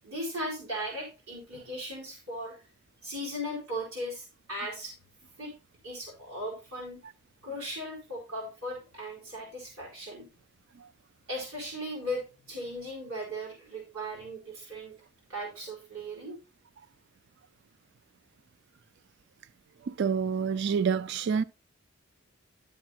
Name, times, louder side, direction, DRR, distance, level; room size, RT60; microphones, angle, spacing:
voice 1, 0.0-2.6 3.0-4.9 5.4-5.5 5.8-7.0 7.4-10.3 11.3-14.9 15.3-16.3, equal, 70° right, 4.4 m, -37 dB
voice 2, 19.8-21.4, right 6 dB, 50° right, 0.3 m, -27 dB
11.5 x 7.3 x 2.9 m
head